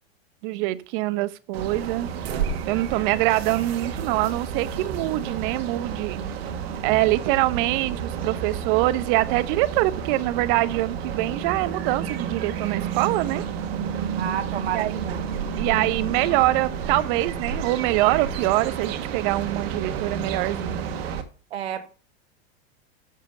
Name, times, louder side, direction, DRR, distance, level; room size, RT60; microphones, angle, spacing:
voice 1, 0.4-2.1 2.7-6.2 6.8-13.4 14.7-14.9 15.6-20.9, right 17 dB, 55° right, 0.8 m, -24 dB
sound 1, 1.5-21.2, right 7 dB, 70° right, 1.7 m, -31 dB
voice 2, 14.2-15.2 21.5-21.9, right 10 dB, 85° right, 1.3 m, -30 dB
7.4 x 6.9 x 5.2 m
hypercardioid pair, 115°, 31 cm